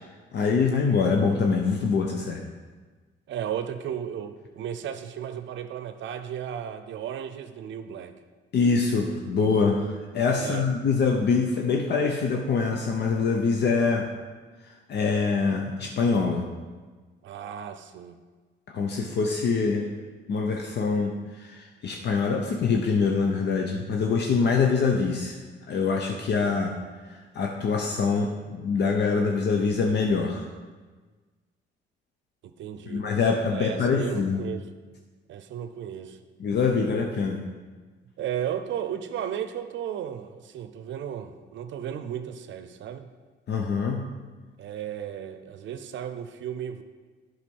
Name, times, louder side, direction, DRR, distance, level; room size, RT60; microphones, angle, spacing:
voice 1, 0.3-2.5 8.5-14.1 14.6-16.5 18.7-19.9 20.3-25.4 25.7-26.8 27.1-30.5 32.9-34.4 36.4-37.4 43.5-44.1, left 5 dB, 60° left, 3 dB, 0.8 m, -24 dB
voice 2, 3.3-8.1 10.4-10.7 17.2-18.2 32.4-33.1 33.5-34.6 35.3-36.2 38.2-43.1 44.6-46.8, right 9 dB, 70° right, 9 dB, 0.6 m, -34 dB
8.3 x 5.9 x 5.3 m, 1.4 s
cardioid pair, 90°, 20 cm